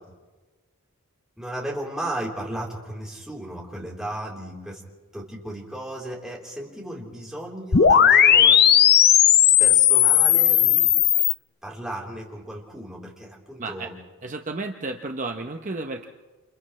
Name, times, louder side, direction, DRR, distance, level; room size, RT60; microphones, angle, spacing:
voice 1, 1.4-4.8 5.1-8.6 9.6-10.9 11.6-14.0, right 1 dB, 5° right, -4 dB, 3.8 m, -35 dB
sound 1, 7.7-11.3, left 9 dB, 45° left, 0.6 m, -16 dB
voice 2, 13.6-13.9 14.2-16.1, right 3 dB, 35° right, 4 dB, 0.8 m, -32 dB
29.0 x 29.0 x 3.2 m, 1.3 s
head